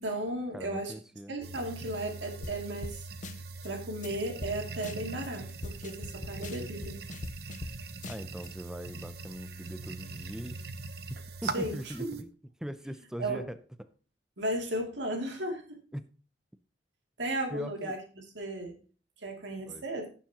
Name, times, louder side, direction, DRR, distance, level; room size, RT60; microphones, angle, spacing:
voice 1, 0.0-0.9 1.3-3.1 3.6-7.0 11.4-12.2 13.2-13.4 14.4-15.8 17.2-18.8 19.2-20.1, right 1 dB, 90° right, 2 dB, 2.7 m, -35 dB
voice 2, 0.5-1.3 8.1-10.7 11.1-12.3 12.6-13.9 15.9-16.1 17.5-18.0 19.7-19.8, equal, 5° right, 11 dB, 0.5 m, -41 dB
sound 1, 1.4-12.2, right 3 dB, 60° right, 0.9 m, -42 dB
sound 2, 2.4-2.6 2.8-3.0 3.2-3.7 4.0-4.1 4.4-4.5 4.8-5.3 5.6-7.7 8.0-8.5, left 2 dB, 45° left, 0.6 m, -41 dB
17.0 x 7.1 x 2.9 m, 0.38 s
head